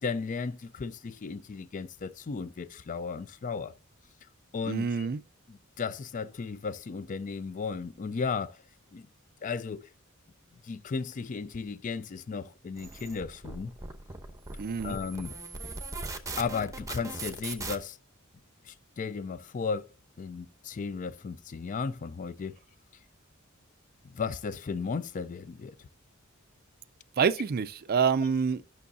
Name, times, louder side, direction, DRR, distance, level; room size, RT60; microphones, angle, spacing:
voice 1, 0.0-3.8 4.5-5.1 5.5-8.6 8.9-9.1 9.4-9.9 10.6-13.7 14.8-15.3 16.4-18.0 18.7-19.9 20.2-22.6 24.0-25.9, left 5 dB, 40° left, 0.4 m, -35 dB
voice 2, 4.7-5.2 14.6-15.0 27.2-28.6, right 6 dB, 45° right, 0.4 m, -27 dB
sound 1, 12.8-17.8, right 3 dB, 15° right, 0.8 m, -39 dB
11.0 x 6.2 x 2.7 m
head